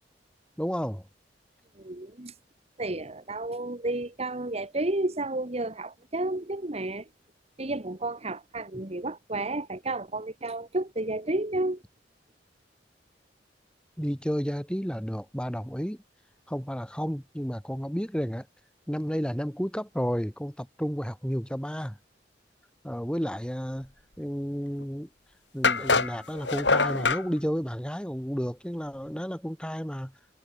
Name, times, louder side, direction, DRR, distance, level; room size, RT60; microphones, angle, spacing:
voice 1, 0.6-1.1 14.0-16.0 16.5-18.5 18.9-22.0 22.8-23.9 24.2-25.1 25.5-30.1, equal, 5° left, 5.7 m, -31 dB
voice 2, 1.8-2.3 2.8-7.1 7.6-11.8, right 2 dB, 35° right, 1.8 m, -31 dB
sound 1, 24.8-24.9 25.6-27.2, left 4 dB, 80° left, 7.8 m, -24 dB
head